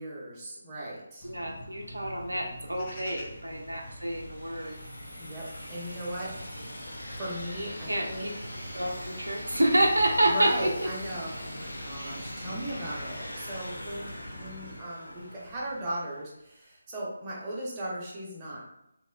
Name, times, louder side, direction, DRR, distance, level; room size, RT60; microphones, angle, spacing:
voice 1, 0.0-1.3 3.4-3.7 5.2-6.3 7.2-8.3 10.3-18.6, right 1 dB, 20° right, -5 dB, 0.6 m, -37 dB
sound 1, 1.2-14.8, equal, 25° left, 0.5 m, -47 dB
voice 2, 1.2-4.8 7.9-8.1 8.7-10.9 12.0-12.1, right 1 dB, 75° right, 0 dB, 0.4 m, -28 dB
sound 2, 2.6-16.3, equal, 75° left, 0.5 m, -42 dB
2.8 x 2.0 x 2.3 m, 0.83 s
figure-of-eight pair, 150°, 0 cm